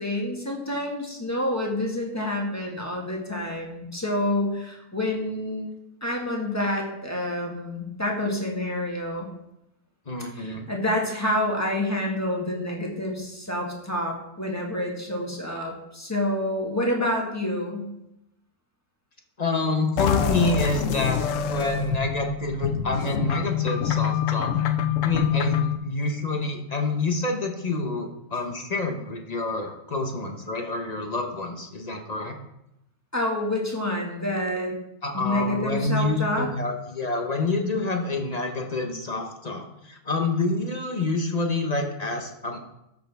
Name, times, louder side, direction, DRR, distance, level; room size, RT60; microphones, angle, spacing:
voice 1, 0.0-5.7 6.0-9.3 10.4-17.9 33.1-34.7 35.1-36.5, left 1 dB, 10° left, 0 dB, 1.6 m, -28 dB
voice 2, 10.1-10.7 19.4-21.2 21.5-24.5 25.0-32.4 35.0-42.6, left 2 dB, 30° left, 3 dB, 1.0 m, -27 dB
sound 1, 20.0-25.8, left 8 dB, 75° left, 1.0 m, -25 dB
13.0 x 6.6 x 3.5 m, 0.85 s
omnidirectional pair, 1.4 m